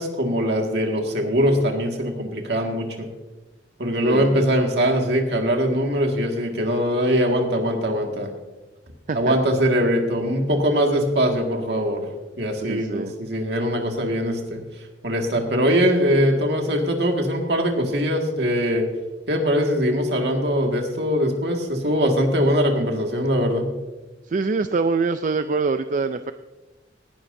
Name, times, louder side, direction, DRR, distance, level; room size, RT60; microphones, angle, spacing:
voice 1, 0.0-3.1 3.8-8.3 9.1-12.1 12.4-14.6 15.0-18.8 19.3-23.7, equal, 65° right, 2 dB, 1.9 m, -22 dB
voice 2, 4.0-4.4 9.1-9.4 12.6-13.1 24.3-26.3, right 4 dB, 45° right, 10 dB, 0.4 m, -24 dB
18.5 x 11.0 x 2.7 m, 1.1 s
head